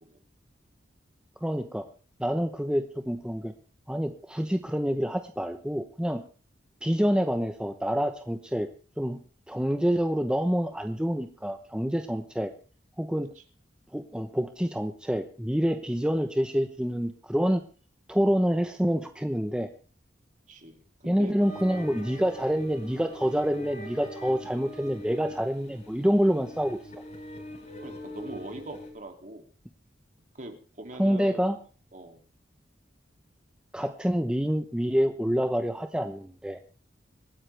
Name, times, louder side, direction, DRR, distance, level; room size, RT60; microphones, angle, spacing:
voice 1, 1.4-1.8 2.2-3.5 3.9-6.2 6.8-8.7 9.0-9.2 9.5-12.5 13.0-13.3 13.9-17.6 18.1-19.7 21.0-26.8 31.0-31.6 33.7-36.6, equal, 5° right, 7 dB, 0.8 m, -27 dB
voice 2, 20.5-21.3 22.0-22.2 27.8-29.4 30.3-31.5 31.9-32.2, right 1 dB, 45° right, 5 dB, 2.6 m, -43 dB
sound 1, 21.4-28.9, equal, 40° left, 4.3 m, -43 dB
25.5 x 9.7 x 3.3 m, 0.39 s
head